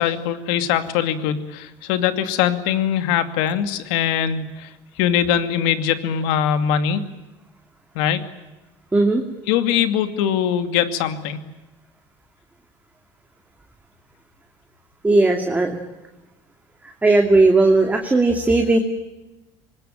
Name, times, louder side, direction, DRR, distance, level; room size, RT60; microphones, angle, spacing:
voice 1, 0.0-4.7 5.0-7.0 7.9-8.2 9.5-11.4, left 9 dB, 85° left, 9 dB, 2.4 m, -21 dB
voice 2, 8.9-9.2 15.0-15.8 17.0-18.8, right 2 dB, 10° right, 3 dB, 2.4 m, -16 dB
25.5 x 20.5 x 8.9 m, 1.1 s
cardioid pair, 125°, 13 cm